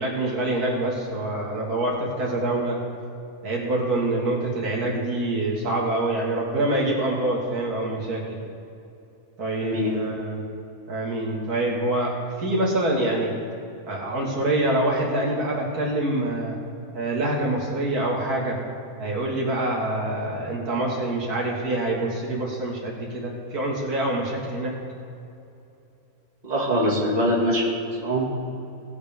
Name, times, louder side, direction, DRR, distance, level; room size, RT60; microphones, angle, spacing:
voice 1, 0.0-2.8 3.4-8.4 9.4-10.4 10.9-12.1 12.4-13.3 13.9-16.6 16.9-18.6 19.0-24.7, right 1 dB, 85° right, -3 dB, 2.5 m, -25 dB
voice 2, 9.6-10.0 26.4-28.3, equal, 25° right, -4 dB, 2.2 m, -23 dB
18.5 x 8.0 x 3.5 m, 2.6 s
omnidirectional pair, 1.6 m